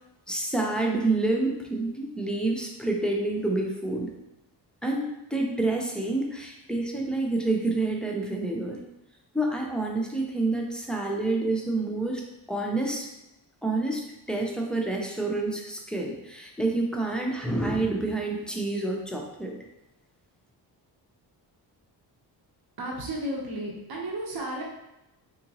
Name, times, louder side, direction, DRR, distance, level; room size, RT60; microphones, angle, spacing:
voice 1, 0.3-4.1 4.8-8.8 9.3-12.2 12.5-13.1 13.6-14.0 14.3-19.6, right 2 dB, ahead, 0 dB, 0.3 m, -28 dB
voice 2, 22.8-24.6, right 1 dB, 55° right, -2 dB, 0.8 m, -33 dB
3.6 x 2.8 x 2.8 m, 0.93 s
wide cardioid pair, 130°, 44 cm